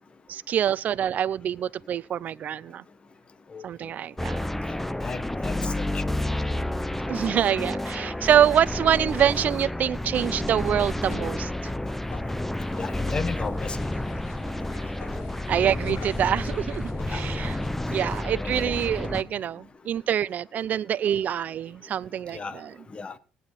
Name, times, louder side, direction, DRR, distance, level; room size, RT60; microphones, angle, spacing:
voice 1, 0.3-2.8 3.6-4.4 7.1-11.5 15.5-17.6 17.9-22.7, right 10 dB, 55° right, 0.7 m, -25 dB
sound 1, 4.2-19.2, left 1 dB, 10° left, 0.9 m, -30 dB
voice 2, 5.0-6.1 12.8-13.9 17.1-17.3 18.3-18.8 22.3-22.6 22.9-23.1, left 4 dB, 35° left, 1.7 m, -35 dB
sound 2, 9.1-19.7, left 5 dB, 65° left, 2.3 m, -49 dB
sound 3, 12.6-17.7, left 9 dB, 90° left, 1.4 m, -48 dB
19.5 x 9.5 x 4.3 m
supercardioid pair, 65°, 3 cm